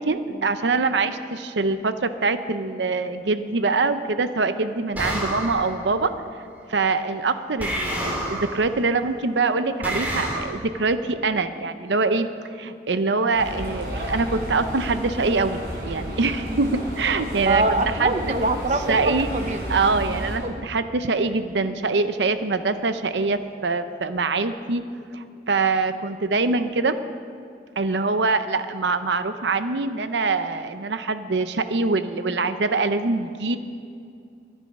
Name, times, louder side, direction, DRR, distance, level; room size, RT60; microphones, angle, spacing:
voice 1, 0.0-6.1 6.7-17.6 18.0-18.1 18.9-19.3 19.7-24.8 25.1-27.0 27.8-33.6, right 3 dB, 90° right, 10 dB, 0.7 m, -24 dB
sound 1, 4.9-5.8 7.6-8.6 9.8-10.4, equal, 10° right, 2.8 m, -28 dB
sound 2, 13.3-20.4, equal, 60° right, 3.8 m, -32 dB
voice 2, 17.5-19.6 20.4-20.5, right 2 dB, 40° right, 7 dB, 0.8 m, -24 dB
23.5 x 9.7 x 5.4 m, 2.4 s
head